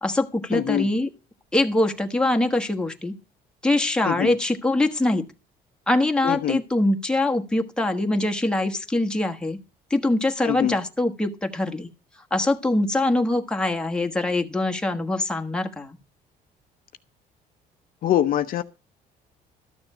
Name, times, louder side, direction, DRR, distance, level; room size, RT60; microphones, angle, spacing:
voice 1, 0.0-1.1 1.5-3.1 3.6-5.2 5.9-9.6 9.9-11.9 12.3-16.0, left 2 dB, 5° left, 1.2 m, -23 dB
voice 2, 0.5-0.9 4.0-4.3 6.2-6.6 10.4-10.8 18.0-18.6, left 11 dB, 55° left, 0.7 m, -23 dB
13.0 x 6.9 x 5.4 m
cardioid pair, 110°, 17 cm